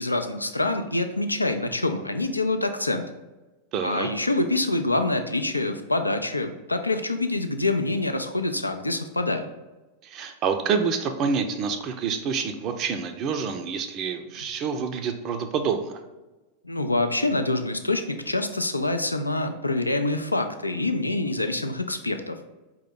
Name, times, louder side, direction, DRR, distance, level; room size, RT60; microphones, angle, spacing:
voice 1, 0.0-3.0 3.8-9.4 16.6-22.4, left 2 dB, 85° left, 7 dB, 0.4 m, -26 dB
voice 2, 3.7-4.1 10.0-16.0, right 6 dB, 35° right, 6 dB, 0.4 m, -27 dB
4.7 x 2.9 x 3.6 m, 1.1 s
figure-of-eight pair, 90°, 0 cm